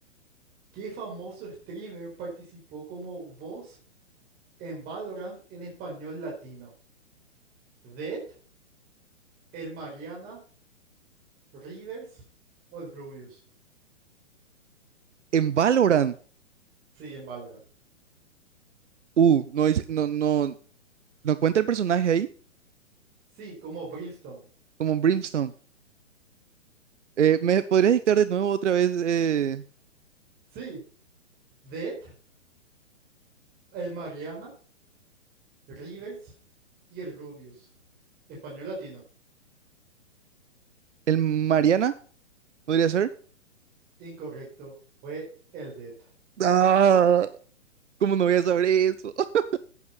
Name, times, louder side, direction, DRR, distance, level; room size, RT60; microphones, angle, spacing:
voice 1, 0.7-3.8 4.6-6.7 7.8-8.2 9.5-10.4 11.6-12.2 12.7-13.4 16.9-17.6 23.3-24.4 30.5-30.8 31.6-32.1 33.7-34.5 35.7-36.3 36.9-37.7 38.4-39.0 44.0-44.7 45.0-45.3 45.5-46.1, right 3 dB, 25° right, -3 dB, 4.8 m, -38 dB
voice 2, 15.3-16.1 19.2-20.5 21.2-22.3 24.8-25.5 27.2-29.6 41.1-41.9 42.7-43.1 46.4-47.3 48.0-49.2, right 8 dB, 70° right, 15 dB, 0.8 m, -22 dB
11.0 x 9.5 x 5.6 m, 0.42 s
figure-of-eight pair, 120°, 37 cm